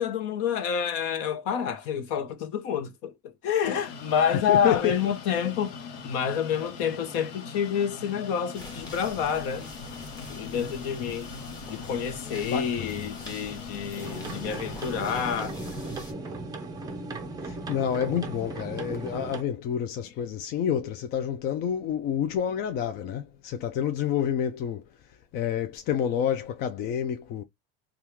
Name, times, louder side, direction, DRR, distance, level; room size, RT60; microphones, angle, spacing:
voice 1, 0.0-5.7 6.0-9.7 10.3-11.3 11.7-15.6 20.0-20.1, left 8 dB, 55° left, 0.9 m, -28 dB
sound 1, 3.6-15.0, left 5 dB, 90° left, 1.0 m, -41 dB
voice 2, 4.5-4.9 12.5-13.0 17.4-24.8 25.3-27.4, left 9 dB, 35° left, 0.4 m, -28 dB
sound 2, 8.5-16.1, left 2 dB, 15° left, 1.3 m, -43 dB
sound 3, 14.0-19.4, right 2 dB, 15° right, 0.6 m, -37 dB
3.5 x 2.3 x 2.9 m
cardioid pair, 155°, 29 cm